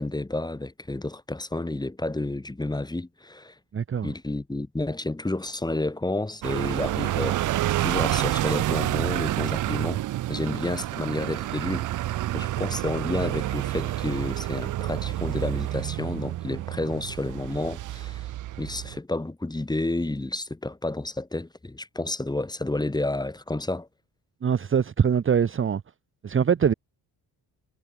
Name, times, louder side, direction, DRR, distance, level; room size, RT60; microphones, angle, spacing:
voice 1, 0.0-3.5 4.0-10.0 10.3-11.9 12.3-18.3 18.6-23.9, left 2 dB, 10° left, 2.8 m, -30 dB
voice 2, 3.7-4.1 24.4-25.8 26.2-26.7, right 7 dB, 30° right, 1.1 m, -23 dB
sound 1, 6.4-19.0, right 15 dB, 50° right, 0.5 m, -29 dB
cardioid pair, 130°, 40 cm